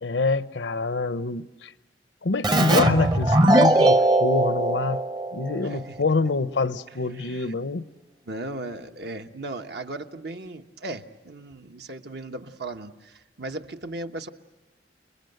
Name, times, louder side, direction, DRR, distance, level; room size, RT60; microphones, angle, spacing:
voice 1, 0.0-1.7 2.2-5.0 5.3-7.9, left 3 dB, 85° left, 0.8 m, -26 dB
Keyboard (musical), 2.4-5.8, right 1 dB, 25° right, 0.8 m, -20 dB
voice 2, 5.6-6.0 7.1-7.5 8.3-14.3, right 2 dB, 65° right, 1.2 m, -37 dB
29.5 x 22.0 x 8.0 m
head